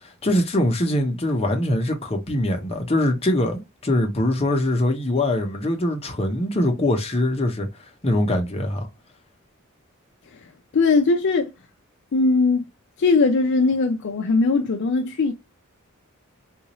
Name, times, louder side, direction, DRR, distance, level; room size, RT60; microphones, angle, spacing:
voice 1, 0.2-7.7 8.0-8.9, left 1 dB, 30° left, 0.8 m, -22 dB
voice 2, 10.7-11.5 12.1-12.7 13.0-15.3, left 3 dB, 55° left, 0.5 m, -20 dB
3.8 x 2.5 x 3.0 m
head